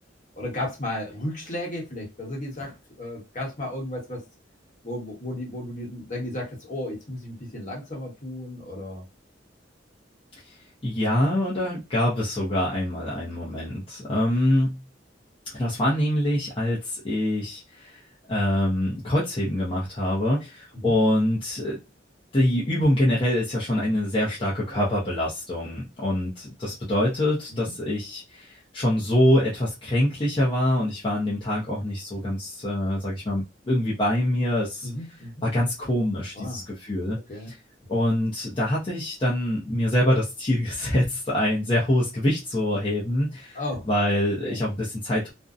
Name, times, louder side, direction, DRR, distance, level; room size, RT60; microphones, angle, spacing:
voice 1, 0.3-4.2 4.8-9.0 14.1-14.2 20.7-20.9 27.5-27.6 34.8-35.4 36.3-36.6 37.3-37.5 43.5-43.9 44.4-44.6, left 1 dB, 45° left, 1.1 m, -34 dB
voice 2, 10.8-14.8 15.5-18.0 18.3-21.8 22.3-34.9 35.4-37.2 37.9-43.6 43.9-45.3, left 1 dB, 30° left, 0.6 m, -25 dB
2.5 x 2.1 x 2.4 m
head